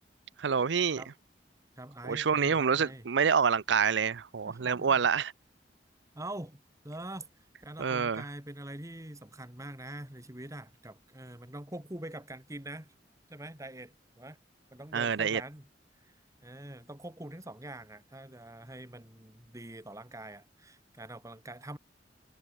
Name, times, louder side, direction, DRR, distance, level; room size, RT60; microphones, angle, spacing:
voice 1, 0.4-1.0 2.0-5.3 7.8-8.2 14.9-15.4, right 6 dB, 80° right, 0.6 m, -27 dB
voice 2, 1.8-3.0 4.5-5.0 6.1-6.6 6.8-7.3 7.6-12.9 13.3-14.4 14.7-15.7 16.4-21.8, right 1 dB, 20° right, 2.3 m, -44 dB
head